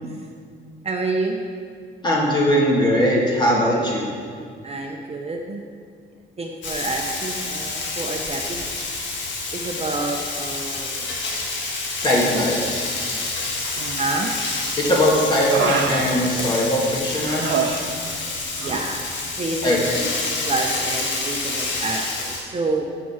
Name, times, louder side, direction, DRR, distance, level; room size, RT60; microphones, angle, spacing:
voice 1, 0.8-1.4 4.6-5.6 6.4-8.6 9.5-11.2 12.2-12.4 14.0-14.3 18.6-19.0 19.4-22.9, right 3 dB, 30° right, 1 dB, 0.8 m, -28 dB
voice 2, 2.0-4.1 12.0-12.6 14.8-17.5 19.6-20.0, equal, 20° left, -4 dB, 2.6 m, -20 dB
Frying (food), 6.6-22.4, left 3 dB, 65° left, 1.6 m, -28 dB
Human voice, 13.6-14.3 14.7-16.8 17.2-18.3 18.6-18.9, right 6 dB, 70° right, 0.9 m, -28 dB
6.9 x 5.9 x 7.4 m, 2.2 s
cardioid pair, 90°, 20 cm